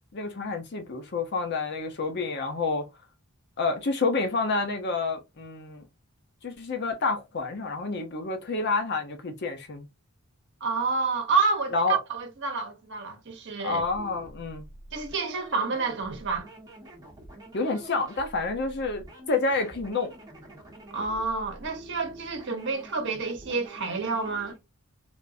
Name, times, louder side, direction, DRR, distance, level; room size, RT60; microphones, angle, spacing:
voice 1, 0.1-2.9 3.6-5.9 6.4-9.8 11.7-12.0 13.6-14.6 17.5-20.1, left 3 dB, 50° left, 0.6 m, -29 dB
voice 2, 10.6-13.8 14.9-16.5 20.9-24.6, right 4 dB, 55° right, 0.9 m, -29 dB
sound 1, 13.7-24.6, right 1 dB, 15° right, 1.2 m, -47 dB
3.5 x 2.5 x 2.5 m
head